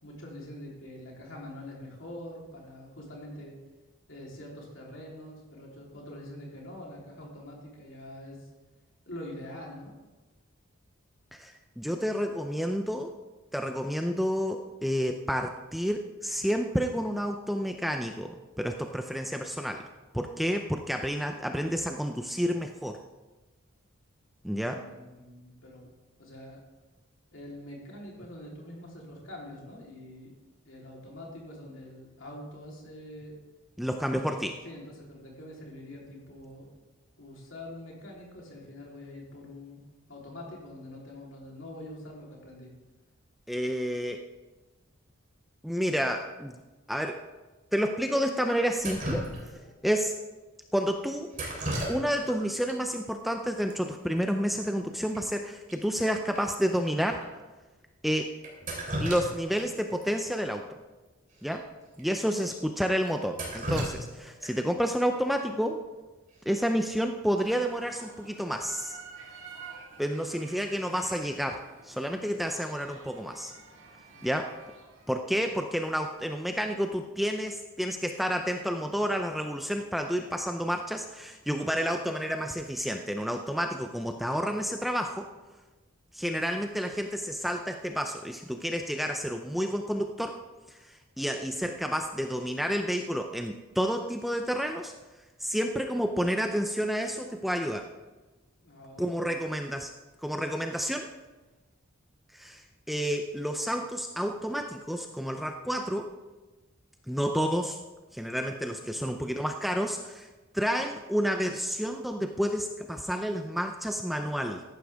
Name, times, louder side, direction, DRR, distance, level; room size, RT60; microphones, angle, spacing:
voice 1, 0.0-3.6 4.1-8.5 9.1-9.9 24.6-25.9 26.2-26.6 27.3-30.3 30.7-33.4 34.1-34.3 34.6-36.7 37.2-39.8 40.1-42.7 74.1-74.4 98.6-99.6 108.9-109.3, left 1 dB, 60° left, -3 dB, 3.4 m, -45 dB
voice 2, 11.3-13.1 13.5-19.8 20.1-23.0 24.4-24.8 33.8-34.5 43.5-44.3 45.6-46.6 46.9-47.2 47.7-49.3 49.8-50.2 50.7-51.3 51.9-57.2 58.0-58.3 59.0-60.7 61.4-61.6 62.0-65.8 66.5-69.0 70.0-73.5 74.2-74.5 75.1-85.3 86.1-90.4 90.7-94.9 95.4-97.9 99.0-99.9 100.2-101.1 102.3-106.1 107.1-107.8 108.1-110.3 110.5-114.6, equal, ahead, 4 dB, 0.4 m, -30 dB
Drip, 48.8-49.8 51.3-52.4 52.7-52.8 53.7-53.8 54.0-54.3 54.6-54.7 55.1-55.2 55.7-55.8 56.3-56.4 57.1-57.3 58.4-59.6 60.0-60.1 61.4-61.5 61.9-62.0 62.5-62.6 63.1-64.7 66.7-67.0 67.4-67.8, equal, 35° right, 3.1 m, -35 dB
sound 1, 67.4-75.1, right 5 dB, 75° right, 3.9 m, -50 dB
14.0 x 11.5 x 3.5 m, 1.2 s
head